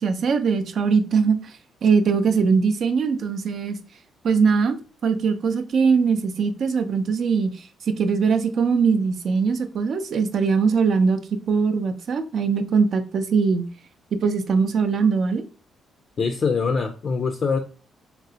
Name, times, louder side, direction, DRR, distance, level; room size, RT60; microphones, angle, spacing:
voice 1, 0.0-1.5 1.8-3.8 4.2-4.8 5.0-7.7 8.0-11.2 11.5-13.7 14.1-15.4, right 5 dB, 60° right, 0.4 m, -21 dB
voice 2, 16.2-17.6, left 5 dB, 50° left, 0.4 m, -23 dB
3.7 x 2.0 x 2.7 m
cardioid pair, 90°, 0 cm